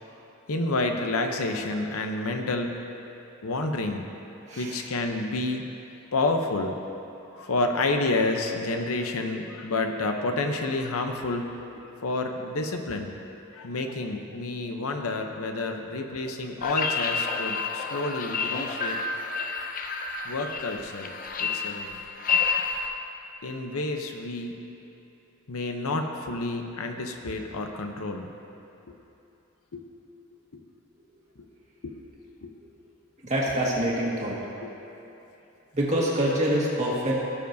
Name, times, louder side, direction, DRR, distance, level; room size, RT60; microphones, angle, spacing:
voice 1, 0.5-2.7 3.4-4.1 4.5-5.6 6.1-6.8 7.4-11.5 12.0-13.1 13.5-19.0 20.3-21.1 21.4-21.9 23.4-24.6 25.5-28.3 29.7-29.8 31.8-31.9 32.4-32.5 34.6-34.7, left 2 dB, 80° left, 4 dB, 0.7 m, -29 dB
voice 2, 4.5-4.9 32.6-32.7 33.2-34.4 35.7-37.1, right 1 dB, 30° right, -5 dB, 1.7 m, -26 dB
sound 1, 16.6-22.9, left 5 dB, 40° left, 0.5 m, -29 dB
17.5 x 7.0 x 2.7 m, 3.0 s
head